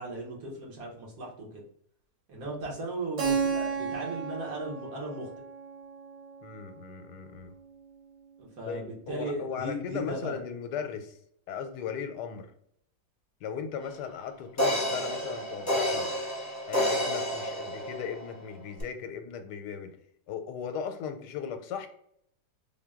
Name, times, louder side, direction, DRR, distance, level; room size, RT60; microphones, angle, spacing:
voice 1, 0.0-1.6 2.3-5.3 8.4-10.4, right 1 dB, 60° right, -3 dB, 1.7 m, -37 dB
Keyboard (musical), 3.2-7.7, right 6 dB, 85° right, 1.5 m, -34 dB
voice 2, 6.4-7.5 8.6-11.1 11.5-12.5 13.4-16.1 16.7-19.9 20.3-21.9, left 7 dB, 90° left, 7 dB, 1.2 m, -37 dB
sound 1, 13.9-14.0 14.6-18.3 18.8-18.9, left 1 dB, 15° left, 0.5 m, -30 dB
3.9 x 2.2 x 3.5 m, 0.66 s
omnidirectional pair, 1.8 m